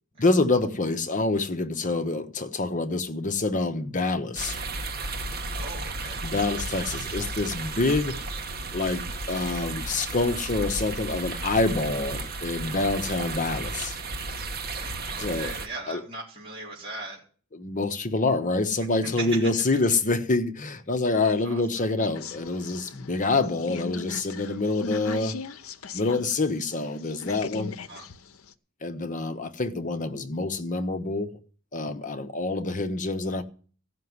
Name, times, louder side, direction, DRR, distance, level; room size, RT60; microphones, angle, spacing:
voice 1, 0.2-4.6 6.2-8.2 8.7-14.0 15.2-15.5 15.9-16.0 17.5-25.4 25.9-27.7 28.8-31.4 31.7-33.4, left 3 dB, 35° left, 1.0 m, -26 dB
sound 1, 4.4-15.7, right 3 dB, 45° right, 1.3 m, -34 dB
voice 2, 5.5-6.2 7.9-8.0 14.8-17.2 19.0-19.3 21.2-21.9 27.9-28.0, right 2 dB, 25° right, 3.7 m, -39 dB
sound 2, 22.1-26.3 26.7-28.5, left 4 dB, 80° left, 0.8 m, -38 dB
15.0 x 6.0 x 9.5 m
head